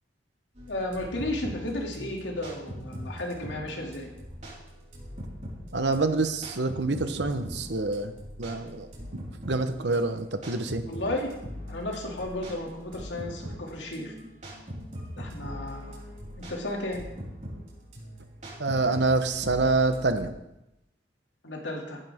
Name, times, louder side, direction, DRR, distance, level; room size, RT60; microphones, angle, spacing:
sound 1, 0.6-20.3, equal, 45° right, 4.9 m, -41 dB
voice 1, 0.7-4.1 10.9-11.3 11.7-14.1 15.2-16.1 16.4-17.0 21.4-22.0, left 1 dB, 85° left, 0 dB, 2.8 m, -33 dB
voice 2, 5.7-8.1 8.4-8.9 9.5-10.8 18.6-20.3, right 3 dB, 75° right, 8 dB, 1.1 m, -26 dB
15.5 x 11.5 x 3.7 m, 0.89 s
head